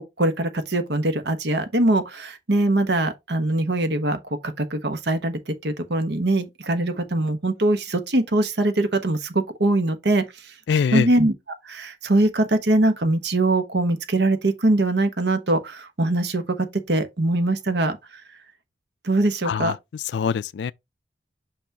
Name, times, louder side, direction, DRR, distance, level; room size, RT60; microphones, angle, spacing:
voice 1, 0.0-10.5 10.9-11.3 11.6-18.0 19.0-19.7, right 2 dB, 65° right, 1.1 m, -22 dB
voice 2, 10.7-11.1 19.4-20.7, left 6 dB, 70° left, 0.3 m, -24 dB
6.1 x 5.8 x 2.9 m
head